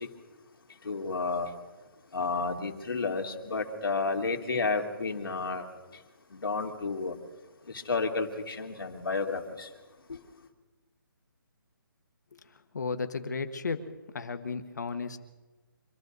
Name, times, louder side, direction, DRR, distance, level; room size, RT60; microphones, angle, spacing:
voice 1, 0.8-1.5 2.1-5.7 6.3-7.1 7.7-9.7 10.1-10.2, left 4 dB, 75° left, 2 dB, 2.6 m, -31 dB
voice 2, 12.7-13.8 14.1-15.2, left 4 dB, 50° left, 8 dB, 1.4 m, -33 dB
26.0 x 13.5 x 4.0 m, 1.2 s
hypercardioid pair, 180°, 12 cm